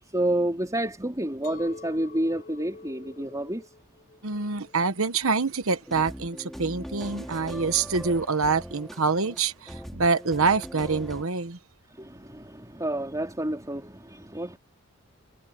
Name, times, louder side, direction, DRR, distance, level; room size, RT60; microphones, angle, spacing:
voice 1, 0.0-3.7 11.9-14.6, right 1 dB, 15° right, 3.7 m, -29 dB
Chink clink, 1.4-6.6, left 3 dB, 40° left, 6.1 m, -48 dB
voice 2, 4.2-11.6, right 4 dB, 70° right, 1.1 m, -26 dB
sound 1, 5.8-11.2, equal, ahead, 3.9 m, -40 dB
head